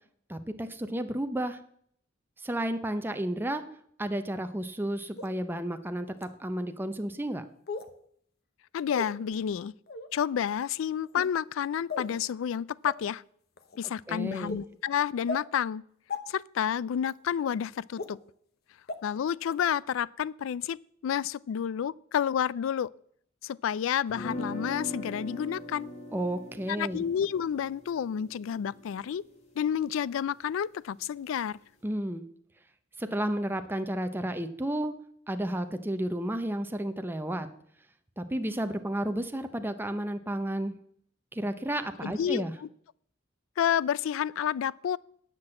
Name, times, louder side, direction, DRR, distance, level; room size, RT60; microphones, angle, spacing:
voice 1, 0.3-1.6 2.4-3.6 4.0-7.4 13.8-14.6 26.1-27.0 31.8-32.2 33.0-34.9 35.3-37.5 38.2-40.7 41.3-42.5, right 1 dB, 10° right, 0.6 m, -32 dB
sound 1, 5.2-5.3 6.2-6.3 7.7-7.9 8.9-9.1 9.9-10.1 11.0-11.3 11.9-12.1 12.9-13.0 13.6-13.8 14.5-14.6 15.3-15.4 16.1-16.2 17.0-17.1 18.0-18.1 18.9-19.0 19.5-19.6, left 4 dB, 50° left, 0.9 m, -35 dB
voice 2, 8.7-9.7 10.1-13.2 13.8-15.8 16.3-18.2 19.0-20.8 21.0-22.9 23.4-25.9 26.7-29.2 29.6-31.6 42.0-42.7 43.6-45.0, left 8 dB, 70° left, 0.3 m, -30 dB
sound 2, 24.1-30.1, left 1 dB, 35° left, 1.8 m, -41 dB
9.7 x 6.1 x 7.6 m
head